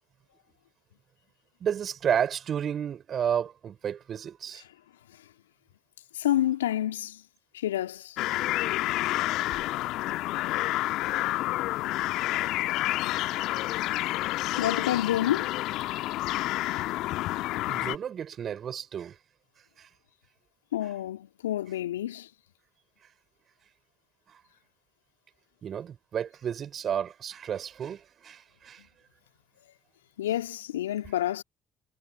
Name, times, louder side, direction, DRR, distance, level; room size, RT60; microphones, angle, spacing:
voice 1, 1.6-4.6 17.7-19.1 19.8-19.9 25.6-28.8, right 8 dB, 45° right, 4.9 m, -31 dB
voice 2, 6.1-7.2 7.5-8.2 9.6-9.7 13.1-13.2 14.6-15.6 20.7-22.3 30.2-31.4, left 12 dB, 80° left, 1.9 m, -29 dB
sound 1, 8.2-18.0, left 17 dB, 60° left, 1.3 m, -29 dB
figure-of-eight pair, 55°, 0 cm